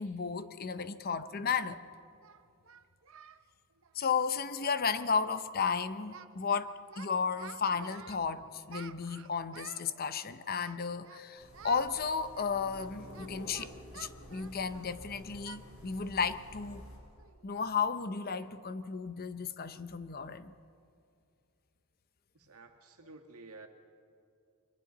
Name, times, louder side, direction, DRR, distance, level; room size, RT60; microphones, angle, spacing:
voice 1, 0.0-1.8 3.9-16.9 17.4-20.5, left 5 dB, 45° left, 12 dB, 0.7 m, -34 dB
Singing, 1.4-1.5 2.2-3.4 3.7-3.9 4.2-4.3 4.6-5.0 5.2-5.5 5.7-6.6 6.9-8.2 8.7-9.9 10.6-11.2 11.5-11.9 12.3-15.0 15.4-15.6 16.0-16.2 16.6-16.7 17.2-17.4, right 7 dB, 65° right, 0.6 m, -52 dB
sound 1, 8.6-11.7, right 1 dB, 20° right, 3.0 m, -65 dB
sound 2, 11.4-17.0, equal, 70° left, 5.5 m, -50 dB
voice 2, 22.4-23.7, right 3 dB, 85° right, 3 dB, 2.1 m, -52 dB
29.5 x 24.0 x 4.0 m, 2.4 s
head